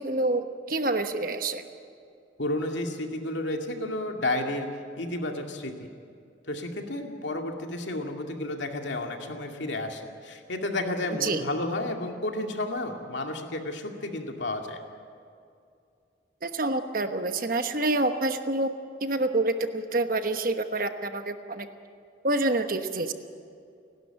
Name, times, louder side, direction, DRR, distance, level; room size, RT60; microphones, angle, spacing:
voice 1, 0.0-1.7 11.2-11.4 16.4-18.7 19.0-21.7 22.2-23.1, right 2 dB, 50° right, 8 dB, 1.2 m, -27 dB
voice 2, 2.4-4.7 5.0-5.9 6.5-14.8, left 2 dB, 80° left, 3 dB, 2.3 m, -31 dB
29.0 x 12.0 x 8.9 m, 2.4 s
head